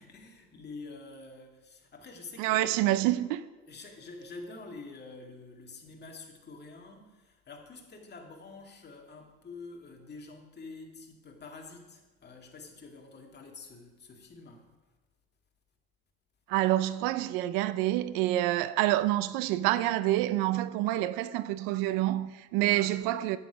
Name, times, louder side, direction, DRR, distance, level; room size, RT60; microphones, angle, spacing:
voice 1, 0.0-2.8 3.7-14.7 22.7-22.9, left 3 dB, 30° left, 2.2 m, -47 dB
voice 2, 2.4-3.4 16.5-23.4, right 15 dB, 85° right, 0.6 m, -27 dB
9.6 x 9.0 x 5.1 m
supercardioid pair, 100°, 32 cm